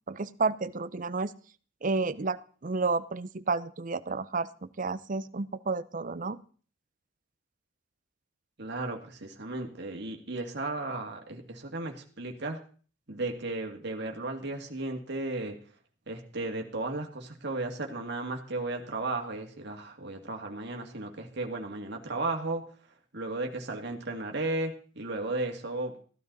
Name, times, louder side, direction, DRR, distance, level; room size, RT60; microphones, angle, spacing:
voice 1, 0.1-1.3 1.8-6.4, right 4 dB, 40° right, 14 dB, 0.7 m, -31 dB
voice 2, 8.6-12.6 13.1-15.6 16.1-22.6 23.1-25.9, right 2 dB, 55° right, 2 dB, 2.2 m, -34 dB
15.5 x 12.0 x 4.0 m, 0.42 s
head